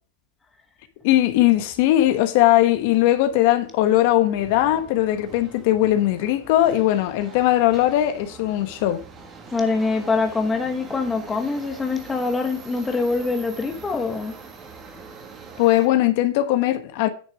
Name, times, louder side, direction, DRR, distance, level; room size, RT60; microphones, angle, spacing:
voice 1, 1.0-9.0 15.6-17.1, left 14 dB, 45° left, 1.2 m, -19 dB
Subway metro underground, 1.4-15.9, right 4 dB, 20° right, 1.7 m, -44 dB
voice 2, 9.5-14.4, left 3 dB, 10° left, 1.1 m, -24 dB
9.6 x 6.3 x 4.7 m
supercardioid pair, 160°, 0 cm